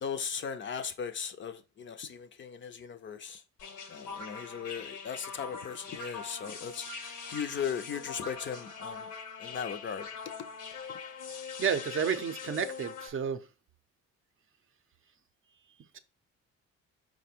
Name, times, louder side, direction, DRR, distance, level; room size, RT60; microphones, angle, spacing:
voice 1, 0.0-3.4 3.9-9.1 9.4-10.1 10.9-11.0, left 7 dB, 40° left, 0.5 m, -38 dB
sound 1, 3.6-13.1, left 5 dB, 85° left, 0.9 m, -42 dB
voice 2, 11.6-13.4, right 7 dB, 45° right, 0.5 m, -31 dB
4.8 x 2.1 x 4.2 m
cardioid pair, 90°, 30 cm